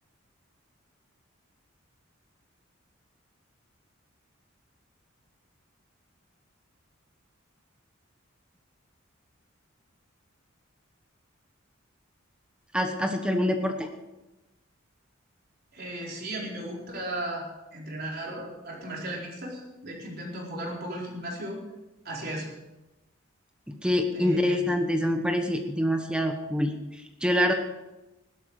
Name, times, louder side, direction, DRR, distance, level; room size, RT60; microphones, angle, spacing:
voice 1, 12.7-13.9 23.7-27.5, equal, 5° right, 5 dB, 1.1 m, -26 dB
voice 2, 15.7-17.4 17.7-21.6 22.0-22.5 24.1-24.7, right 1 dB, 50° right, -2 dB, 4.4 m, -36 dB
16.5 x 12.5 x 4.9 m, 1.0 s
head